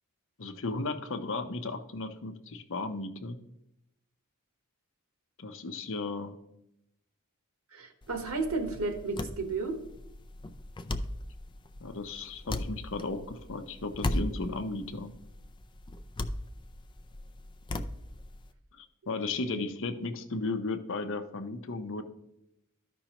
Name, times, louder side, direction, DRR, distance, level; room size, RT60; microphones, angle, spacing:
voice 1, 0.4-3.4 5.4-6.4 11.8-15.1 18.8-22.0, left 3 dB, 60° left, 8 dB, 0.8 m, -35 dB
voice 2, 7.7-9.8 19.1-19.7, right 3 dB, 90° right, 5 dB, 1.2 m, -33 dB
sound 1, 8.0-18.5, left 1 dB, 20° left, 0.4 m, -38 dB
13.5 x 5.4 x 2.9 m, 0.83 s
head